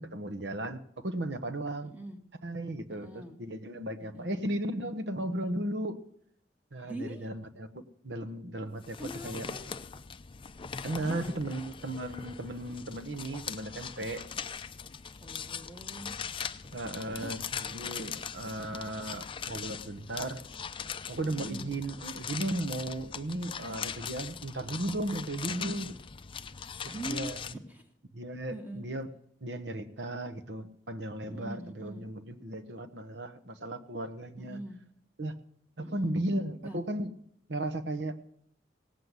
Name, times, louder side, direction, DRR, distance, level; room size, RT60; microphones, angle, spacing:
voice 1, 0.0-1.9 2.4-6.0 6.7-9.0 9.2-9.5 10.8-14.2 16.7-20.4 21.1-25.9 26.8-27.4 28.1-29.1 29.4-34.6 35.2-35.3 35.8-37.1 37.5-38.2, right 1 dB, 65° right, 9 dB, 1.1 m, -35 dB
voice 2, 1.8-2.2 2.9-3.4 4.0-4.5 6.8-7.3 9.0-9.8 10.8-11.4 15.2-16.1 17.1-17.4 21.3-21.7 25.5-25.8 26.9-27.3 27.7-27.9 28.5-28.8 31.3-32.0 34.4-34.8 35.8-36.1 36.6-36.8, right 1 dB, 10° right, 4 dB, 1.3 m, -42 dB
sound 1, 8.8-27.5, left 6 dB, 30° left, 0.5 m, -41 dB
17.5 x 7.7 x 8.1 m, 0.70 s
head